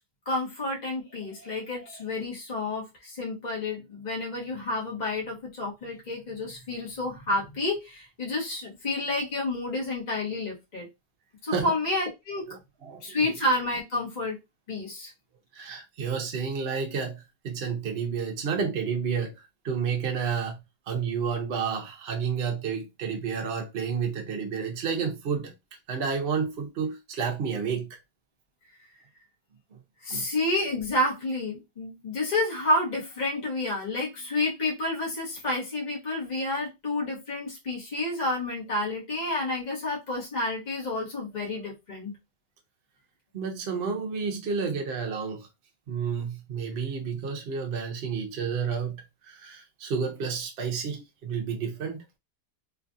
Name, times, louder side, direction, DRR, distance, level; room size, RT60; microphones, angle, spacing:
voice 1, 0.3-10.9 11.4-12.4 13.0-14.4 14.7-15.1 30.0-42.2, left 2 dB, 30° left, 1.1 m, -30 dB
voice 2, 12.5-13.3 15.5-19.4 19.6-20.6 20.9-25.5 25.9-28.0 30.1-30.3 43.3-45.5 45.9-52.0, right 6 dB, 50° right, 0.8 m, -30 dB
3.2 x 2.4 x 2.6 m
omnidirectional pair, 1.8 m